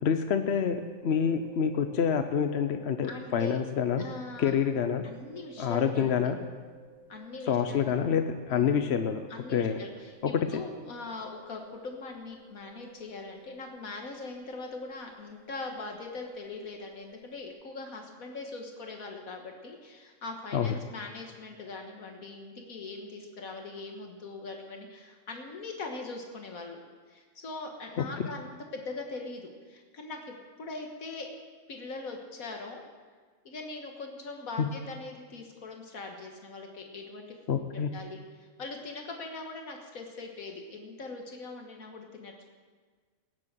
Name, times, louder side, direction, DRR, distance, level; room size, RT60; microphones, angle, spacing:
voice 1, 0.0-4.0 4.4-5.0 5.6-6.4 7.4-9.2 9.5-9.8 10.2-10.6 20.5-20.8 28.0-28.1 34.6-34.7 37.5-37.9, left 7 dB, 55° left, 8 dB, 0.9 m, -27 dB
sound 1, 0.7-17.6, right 2 dB, 5° left, 5.6 m, -55 dB
voice 2, 3.0-3.6 4.0-4.5 5.0-6.3 7.1-7.9 8.5-8.8 9.3-26.8 27.1-31.3 31.7-32.8 33.5-42.5, left 3 dB, 80° left, 2 dB, 1.9 m, -41 dB
18.5 x 7.7 x 7.5 m, 1.5 s
omnidirectional pair, 1.5 m